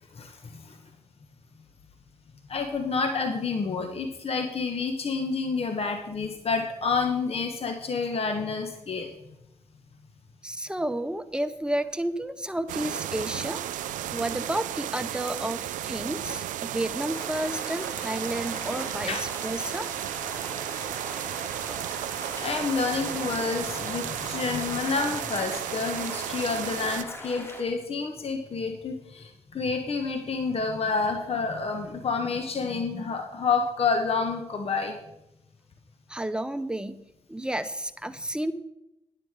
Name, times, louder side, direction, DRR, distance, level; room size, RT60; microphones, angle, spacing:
voice 1, 0.1-0.8 2.5-9.1 19.1-19.2 22.1-35.0, left 4 dB, 50° left, 5 dB, 1.3 m, -29 dB
voice 2, 10.4-13.6 14.1-19.9 36.1-37.0 37.3-38.5, right 1 dB, 5° right, 11 dB, 0.9 m, -31 dB
sound 1, 12.7-27.0, right 12 dB, 75° right, 0.5 m, -34 dB
sound 2, 17.1-27.6, left 1 dB, 20° left, 3.2 m, -41 dB
9.7 x 7.8 x 4.9 m, 0.88 s
supercardioid pair, 45°, 13 cm